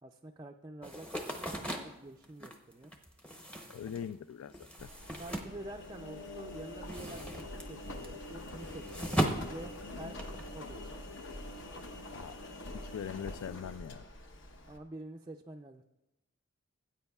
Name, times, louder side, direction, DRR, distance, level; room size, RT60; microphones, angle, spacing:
voice 1, 0.0-2.9 5.2-10.2 10.5-10.8 14.7-15.8, right 2 dB, 20° right, 1 dB, 0.4 m, -47 dB
sound 1, 0.8-6.3 6.6-10.5, equal, 5° left, 0.7 m, -38 dB
voice 2, 3.7-4.9 12.1-12.4 12.7-14.0, left 8 dB, 85° left, 14 dB, 0.3 m, -42 dB
Engine, 4.8-14.8, left 1 dB, 60° left, 1.0 m, -45 dB
18.0 x 8.9 x 2.3 m, 0.93 s
head